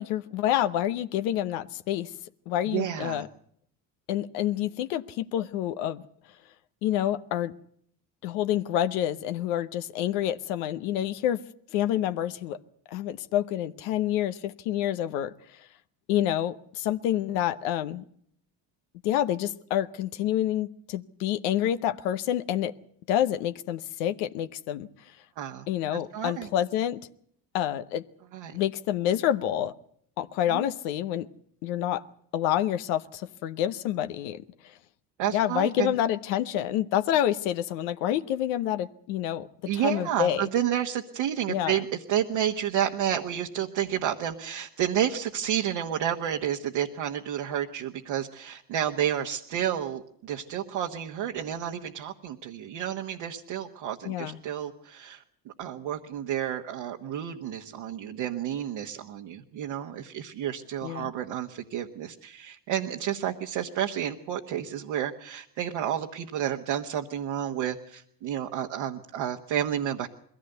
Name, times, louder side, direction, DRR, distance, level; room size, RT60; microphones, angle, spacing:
voice 1, 0.0-2.1 2.5-3.3 4.1-6.0 6.8-7.5 8.2-11.4 11.7-12.6 12.9-15.3 16.1-18.0 19.0-22.7 23.1-24.9 25.7-27.0 27.5-28.0 28.5-29.7 30.2-31.3 31.6-32.0 32.3-34.4 35.3-39.5 39.7-40.5 41.5-41.7 54.0-54.4 60.8-61.1, left 11 dB, 85° left, 10 dB, 0.9 m, -28 dB
voice 2, 2.6-3.2 25.4-26.5 28.3-28.6 30.5-30.7 35.2-35.9 39.7-70.1, right 10 dB, 75° right, 2 dB, 1.5 m, -30 dB
21.5 x 16.0 x 8.0 m, 0.66 s
supercardioid pair, 65°, 45 cm